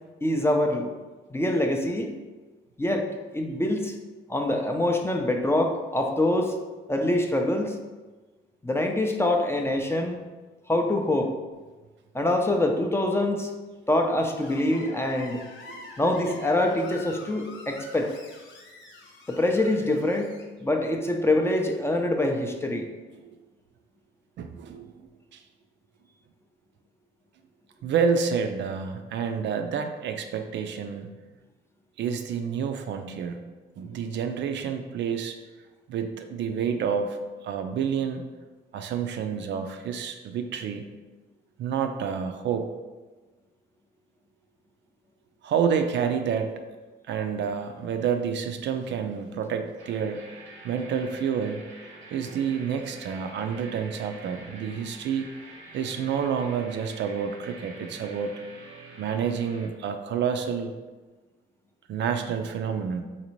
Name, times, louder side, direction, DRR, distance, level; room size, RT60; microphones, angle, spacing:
voice 1, 0.2-0.9 1.3-2.1 2.8-3.9 4.3-6.6 6.9-7.8 8.6-10.2 10.7-11.3 12.1-13.5 13.9-15.4 16.0-18.1 19.3-20.3 20.6-22.9, left 1 dB, 10° left, 3 dB, 0.4 m, -25 dB
Screech, 14.4-20.4, left 3 dB, 70° left, 0.7 m, -46 dB
voice 2, 24.4-24.9 25.3-25.4 27.8-31.1 32.0-33.4 33.8-35.4 35.9-37.2 37.4-38.2 38.7-40.8 41.6-42.7 45.4-46.5 47.1-50.3 50.6-51.6 52.1-55.3 55.7-58.4 59.0-60.7 61.9-63.0, right 7 dB, 65° right, 6 dB, 0.4 m, -29 dB
sound 1, 49.8-59.7, right 2 dB, 85° right, 0.8 m, -47 dB
4.1 x 2.6 x 3.0 m, 1.3 s
cardioid pair, 90°, 20 cm